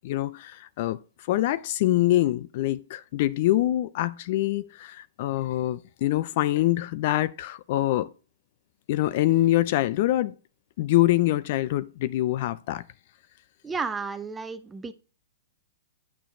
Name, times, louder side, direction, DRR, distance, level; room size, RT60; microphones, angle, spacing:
voice 1, 0.0-8.1 8.9-10.3 10.8-12.8, left 15 dB, 50° left, 0.5 m, -25 dB
voice 2, 13.6-14.9, right 4 dB, 15° right, 0.8 m, -32 dB
9.1 x 6.7 x 4.2 m
hypercardioid pair, 115°, 0 cm